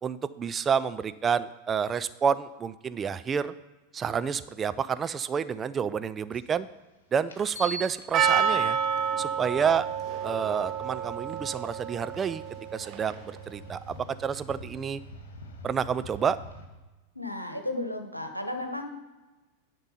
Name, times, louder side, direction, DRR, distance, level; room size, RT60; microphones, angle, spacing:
voice 1, 0.0-3.5 3.9-6.7 7.1-8.8 9.2-9.9 10.2-12.4 12.7-15.0 15.6-16.4, right 7 dB, 20° right, 13 dB, 0.4 m, -29 dB
sound 1, 6.3-6.4 7.3-16.6, right 2 dB, 60° left, 1.7 m, -45 dB
Percussion, 8.1-13.4, right 7 dB, 35° right, 0.8 m, -29 dB
voice 2, 17.1-18.9, left 1 dB, 90° left, 7 dB, 1.0 m, -34 dB
10.5 x 5.3 x 5.7 m, 1.2 s
figure-of-eight pair, 90°, 0 cm